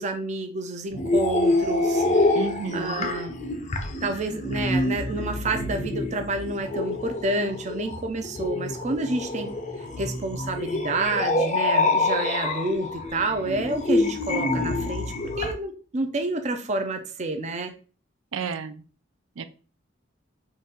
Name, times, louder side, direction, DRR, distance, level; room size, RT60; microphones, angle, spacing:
voice 1, 0.0-2.0 2.7-3.3 4.0-9.5 10.0-17.7, right 2 dB, 35° right, 5 dB, 0.5 m, -29 dB
sound 1, 0.9-15.5, left 2 dB, 35° left, 0.6 m, -26 dB
voice 2, 2.3-3.1 18.3-18.8 19.4-19.5, right 5 dB, 85° right, 11 dB, 0.4 m, -32 dB
4.0 x 2.5 x 3.8 m, 0.37 s
head